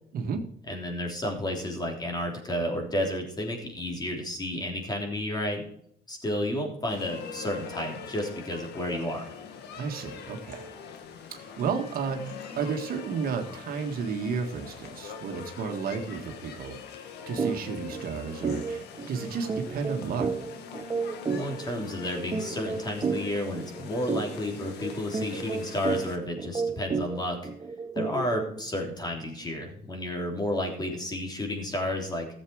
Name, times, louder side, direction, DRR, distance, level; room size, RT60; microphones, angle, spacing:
voice 1, 0.1-0.4 9.7-10.7 11.3-20.3, right 5 dB, 60° right, 4 dB, 1.7 m, -32 dB
voice 2, 0.7-5.6 6.1-9.3 21.3-27.5 27.9-32.3, left 1 dB, 25° left, 2 dB, 3.4 m, -31 dB
sound 1, 6.9-26.2, left 6 dB, 80° left, 1.6 m, -43 dB
sound 2, 17.4-17.6 17.9-18.1 18.4-28.7, right 4 dB, 25° right, 0.9 m, -32 dB
14.0 x 7.6 x 4.8 m, 0.68 s
cardioid pair, 110°, 17 cm